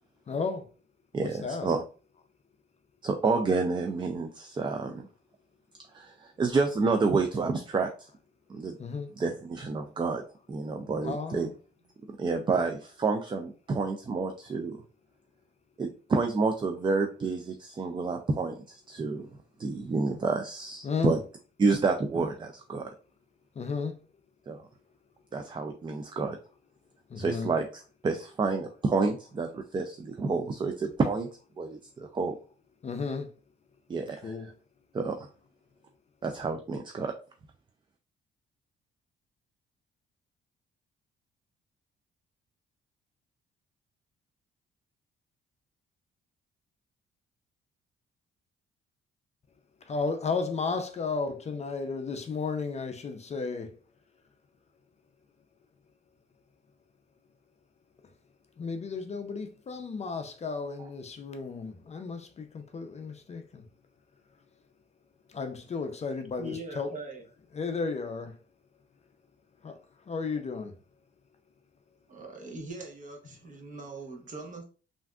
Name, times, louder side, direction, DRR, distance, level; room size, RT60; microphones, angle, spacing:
voice 1, 0.3-0.7 1.2-1.7 8.8-9.1 11.0-11.5 20.8-21.2 23.6-24.0 27.1-27.5 32.8-33.3 34.2-34.5 49.9-53.8 58.6-63.7 65.3-66.9 67.5-68.3 69.6-69.8 70.1-70.8, left 4 dB, 35° left, 0.5 m, -33 dB
voice 2, 1.1-1.8 3.0-5.0 5.9-8.1 8.5-8.8 9.2-10.2 10.5-11.5 12.2-14.8 15.8-19.3 19.6-21.2 21.6-22.9 24.5-24.6 25.3-26.4 27.2-27.6 28.0-31.3 31.6-32.3 33.9-34.3 34.9-35.3 36.2-37.1, right 4 dB, 25° right, 0.4 m, -29 dB
voice 3, 66.4-67.2 72.1-74.6, right 2 dB, 40° right, 1.0 m, -41 dB
3.3 x 2.5 x 2.3 m
cardioid pair, 90°, 20 cm